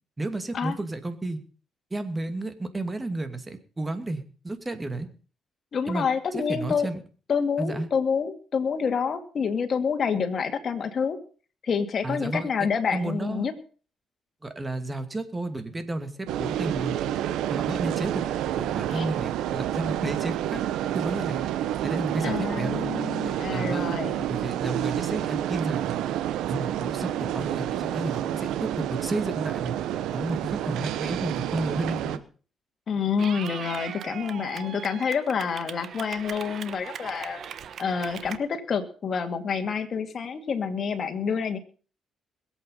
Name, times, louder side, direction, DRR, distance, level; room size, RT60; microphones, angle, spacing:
voice 1, 0.2-1.4 1.9-5.1 5.9-6.0 6.3-7.0 7.6-7.9 12.0-12.5 12.9-13.4 14.4-16.1 16.4-17.0 17.5-18.3 18.6-20.6 20.9-21.5 21.8-22.9 23.2-24.0 24.3-26.0 26.5-29.8 30.1-32.2, right 2 dB, 20° right, 9 dB, 2.5 m, -32 dB
voice 2, 5.7-6.9 7.3-11.2 11.6-13.5 18.9-19.0 22.2-24.3 32.9-37.4 37.8-41.6, left 6 dB, 50° left, 6 dB, 2.3 m, -28 dB
sound 1, 16.3-32.2, right 11 dB, 90° right, 1.0 m, -29 dB
Clapping / Cheering, 33.2-38.4, right 8 dB, 60° right, 1.1 m, -39 dB
21.0 x 8.4 x 5.6 m, 0.40 s
cardioid pair, 90°, 0 cm